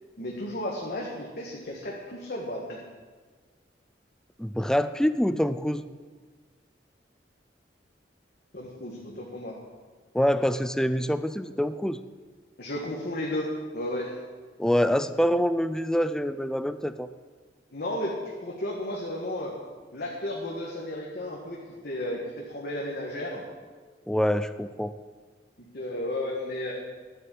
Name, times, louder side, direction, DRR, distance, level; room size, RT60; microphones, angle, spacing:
voice 1, 0.2-2.8 8.5-9.6 12.6-14.1 17.7-18.2 18.4-19.6 19.9-21.6 21.8-23.4 25.7-26.7, left 1 dB, 60° left, -3 dB, 1.7 m, -33 dB
voice 2, 4.4-5.8 10.1-12.0 14.6-17.1 24.1-24.9, equal, 5° left, 12 dB, 0.4 m, -25 dB
11.0 x 8.0 x 7.7 m, 1.5 s
head